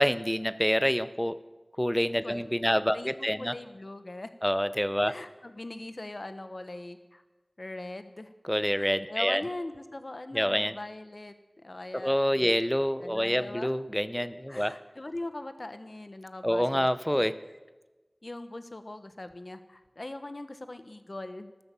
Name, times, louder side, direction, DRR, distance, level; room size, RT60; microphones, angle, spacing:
voice 1, 0.0-1.4 1.8-3.5 4.4-5.2 8.5-9.4 10.3-10.7 11.9-14.8 16.4-17.4, equal, 10° left, 14 dB, 0.6 m, -27 dB
voice 2, 2.2-4.3 5.1-7.2 7.6-8.3 8.8-12.5 13.0-13.7 14.5-17.3 18.2-21.5, left 2 dB, 65° left, 10 dB, 1.1 m, -41 dB
15.0 x 12.5 x 7.5 m, 1.2 s
wide cardioid pair, 40°, 0 cm